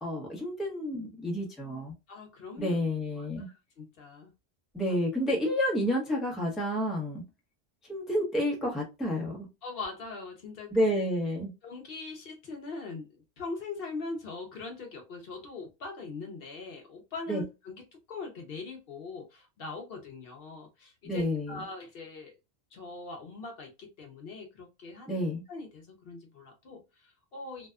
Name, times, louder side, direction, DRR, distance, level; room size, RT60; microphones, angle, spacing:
voice 1, 0.0-1.9 2.6-3.5 4.7-7.2 7.9-9.5 10.7-11.5 17.3-17.4 21.0-21.6 25.1-25.4, equal, ahead, 0.6 m, -30 dB
voice 2, 2.1-2.8 3.2-4.3 4.9-5.0 9.6-11.0 11.6-22.4 22.7-25.2 25.5-27.7, left 3 dB, 65° left, 0.8 m, -42 dB
2.6 x 2.2 x 2.2 m
omnidirectional pair, 1.1 m